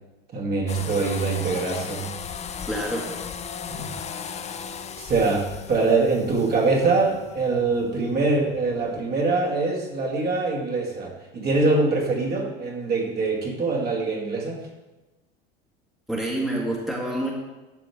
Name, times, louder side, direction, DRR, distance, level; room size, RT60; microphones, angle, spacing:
voice 1, 0.3-2.1 3.7-3.9 5.0-14.6, right 3 dB, 35° right, -1 dB, 2.2 m, -24 dB
sound 1, 0.7-9.0, left 7 dB, 25° left, 0.6 m, -37 dB
voice 2, 2.7-3.1 16.1-17.3, right 1 dB, ahead, -2 dB, 1.7 m, -27 dB
11.5 x 6.9 x 3.6 m, 1.1 s
hypercardioid pair, 85°, 29 cm